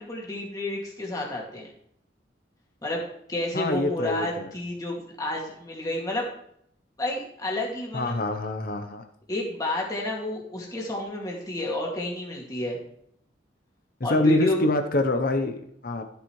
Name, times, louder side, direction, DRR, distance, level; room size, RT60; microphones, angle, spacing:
voice 1, 0.0-1.7 2.8-3.0 3.3-6.3 7.0-8.2 9.3-12.8 14.0-14.7, left 1 dB, 20° left, -3 dB, 2.3 m, -30 dB
voice 2, 3.5-4.5 7.9-9.0 14.1-16.0, left 2 dB, 50° left, 7 dB, 0.8 m, -25 dB
13.5 x 8.0 x 3.2 m, 0.69 s
head